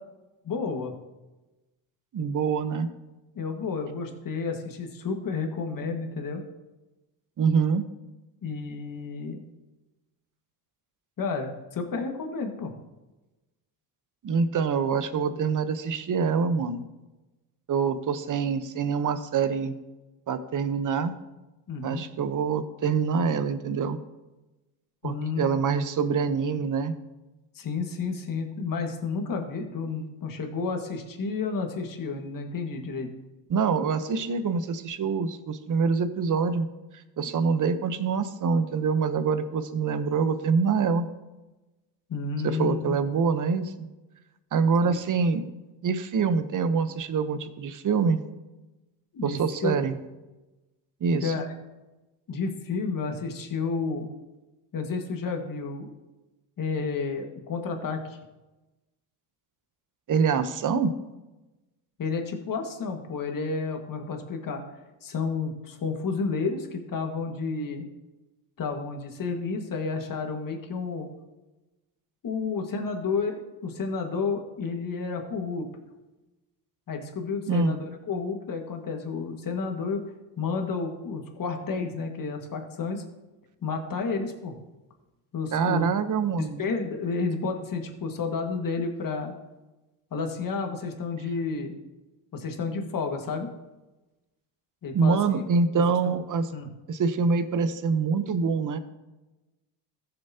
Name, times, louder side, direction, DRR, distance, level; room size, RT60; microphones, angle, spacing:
voice 1, 0.4-0.9 3.4-6.4 8.4-9.4 11.2-12.7 21.7-22.0 25.0-25.5 27.6-33.1 42.1-42.9 44.8-45.0 49.1-49.7 51.2-51.5 52.3-54.1 54.7-55.9 56.6-58.2 62.0-64.6 65.0-67.9 68.6-71.1 72.2-75.7 76.9-80.0 80.4-83.0 83.6-84.6 85.3-85.9 86.6-89.3 90.1-91.8 92.3-93.5 94.8-95.2 95.7-95.9 96.5-96.7, left 4 dB, 40° left, 3 dB, 1.8 m, -31 dB
voice 2, 2.1-2.9 7.4-7.9 14.2-16.8 17.7-19.7 20.3-21.1 21.8-24.0 25.0-26.9 33.5-36.7 37.2-41.0 42.4-43.9 44.5-45.5 45.8-48.2 49.2-50.0 51.0-51.3 60.1-60.9 77.5-77.8 85.5-86.6 94.9-96.5 96.9-98.8, right 5 dB, 40° right, 10 dB, 1.0 m, -25 dB
15.0 x 6.9 x 2.9 m, 1.1 s
supercardioid pair, 90°, 50 cm